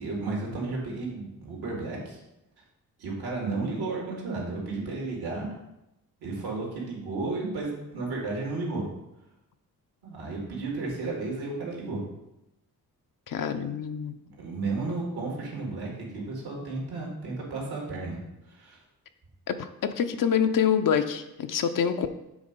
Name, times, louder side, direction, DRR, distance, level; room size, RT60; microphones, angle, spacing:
voice 1, 0.0-2.2 3.0-5.5 6.2-8.8 10.0-12.0 14.4-18.2 18.6-18.8, right 3 dB, 75° right, -2 dB, 2.3 m, -33 dB
voice 2, 13.3-14.1 19.5-22.1, left 8 dB, 55° left, 8 dB, 0.7 m, -26 dB
7.1 x 3.5 x 5.2 m, 0.89 s
supercardioid pair, 50°, 39 cm